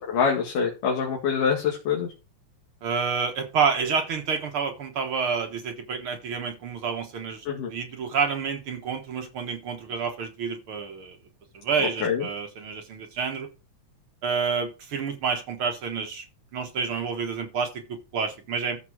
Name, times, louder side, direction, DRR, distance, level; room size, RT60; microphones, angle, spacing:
voice 1, 0.1-2.1 7.5-7.7 12.0-12.2, left 6 dB, 90° left, -1 dB, 3.5 m, -25 dB
voice 2, 2.8-11.2 11.5-13.5 14.2-16.3 16.5-18.8, right 5 dB, 55° right, 5 dB, 1.8 m, -29 dB
13.5 x 5.4 x 4.9 m, 0.31 s
omnidirectional pair, 3.6 m